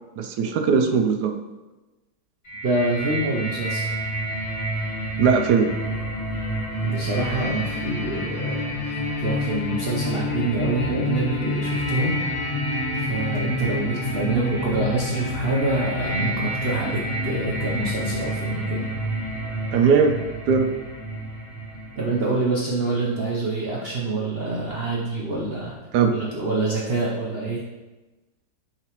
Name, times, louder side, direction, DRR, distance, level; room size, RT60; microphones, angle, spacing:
voice 1, 0.2-1.3 5.2-5.7 19.7-20.2 20.5-20.7 25.9-26.1, right 6 dB, 75° right, 5 dB, 1.1 m, -19 dB
sound 1, 2.5-22.2, left 1 dB, 35° left, 1.9 m, -28 dB
voice 2, 2.6-3.9 6.8-12.2 12.9-18.8 22.0-25.7 26.1-27.6, right 2 dB, 50° right, -4 dB, 0.7 m, -26 dB
8.8 x 3.9 x 3.0 m, 1.1 s
omnidirectional pair, 1.8 m